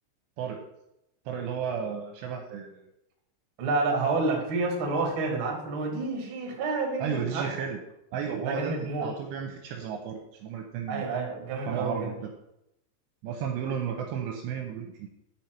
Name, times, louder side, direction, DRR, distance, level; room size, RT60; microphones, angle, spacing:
voice 1, 1.3-2.9 7.0-7.8 8.1-11.1 11.7-12.3 13.2-15.1, right 7 dB, 80° right, 3 dB, 2.6 m, -33 dB
voice 2, 3.6-7.5 8.4-9.1 10.9-12.1, right 3 dB, 65° right, 0 dB, 1.3 m, -29 dB
11.0 x 5.3 x 4.4 m, 0.83 s
omnidirectional pair, 5.7 m